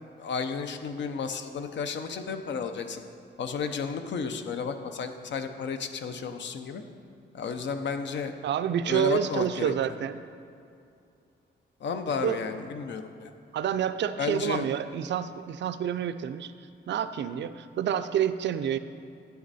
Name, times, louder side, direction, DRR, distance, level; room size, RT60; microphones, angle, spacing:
voice 1, 0.2-3.0 3.4-6.8 7.3-8.3 8.8-9.7 11.8-13.3 14.2-14.7, left 5 dB, 65° left, 7 dB, 0.7 m, -32 dB
voice 2, 8.4-10.2 12.2-12.4 13.5-16.5 16.9-18.8, right 9 dB, 70° right, 11 dB, 0.4 m, -28 dB
9.6 x 9.4 x 4.1 m, 2.5 s
wide cardioid pair, 140°, 20 cm